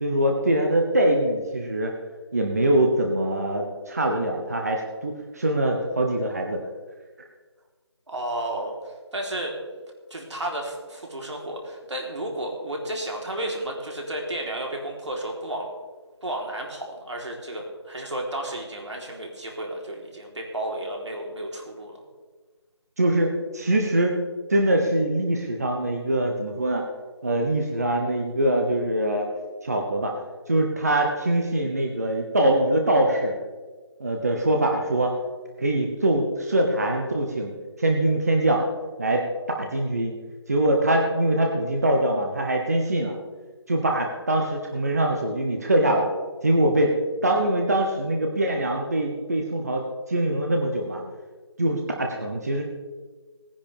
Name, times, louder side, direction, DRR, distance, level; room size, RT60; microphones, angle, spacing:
voice 1, 0.0-1.9 2.3-6.6 23.0-24.2 24.5-26.9 27.2-29.3 29.6-30.2 30.5-33.3 34.0-35.1 35.6-37.5 37.8-38.6 39.0-39.2 39.6-40.1 40.5-43.2 43.7-46.1 46.4-46.9 47.2-51.0 51.6-52.6, right 1 dB, 35° right, 1 dB, 1.1 m, -23 dB
voice 2, 8.1-9.5 10.1-15.7 16.2-21.9, right 1 dB, 80° right, 0 dB, 3.7 m, -32 dB
19.0 x 10.0 x 3.5 m, 1.4 s
figure-of-eight pair, 175°, 15 cm